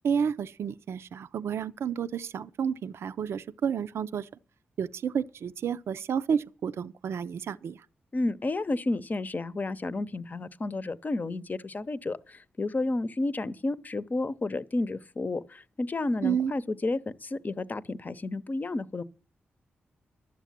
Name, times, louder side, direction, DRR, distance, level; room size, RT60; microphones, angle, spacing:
voice 1, 0.0-4.3 4.8-7.9 16.2-16.5, right 7 dB, 75° right, 0.5 m, -30 dB
voice 2, 8.1-19.0, left 2 dB, 40° left, 0.8 m, -31 dB
12.0 x 7.4 x 7.3 m
cardioid pair, 50°, 4 cm